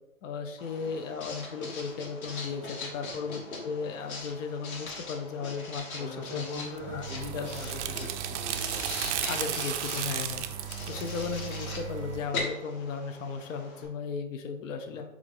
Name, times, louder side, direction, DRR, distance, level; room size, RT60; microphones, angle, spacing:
voice 1, 0.2-6.4 6.9-7.0 7.3-7.5 9.3-15.0, left 5 dB, 65° left, 6 dB, 0.6 m, -36 dB
Writing, 0.6-13.9, left 3 dB, 90° left, 1.3 m, -41 dB
voice 2, 0.7-1.1 3.2-3.8 6.0-9.4 10.8-11.0 14.8-15.0, left 2 dB, 10° left, -4 dB, 0.7 m, -42 dB
sound 1, 6.8-12.3, right 10 dB, 60° right, 0.5 m, -34 dB
4.7 x 2.4 x 3.8 m, 0.92 s
hypercardioid pair, 140°, 41 cm